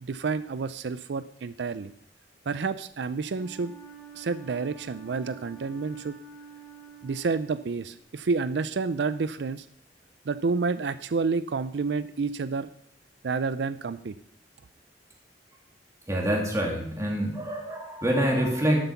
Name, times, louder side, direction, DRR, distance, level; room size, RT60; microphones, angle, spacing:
voice 1, 0.0-1.9 2.5-3.7 4.1-6.2 7.0-9.7 10.3-12.7 13.2-14.1, right 4 dB, 70° right, 13 dB, 0.5 m, -29 dB
Wind instrument woodwind instrument, 3.2-7.9, right 7 dB, 5° left, 3.6 m, -47 dB
voice 2, 16.1-18.8, equal, 15° right, -1 dB, 2.6 m, -26 dB
12.5 x 7.9 x 5.8 m, 0.64 s
head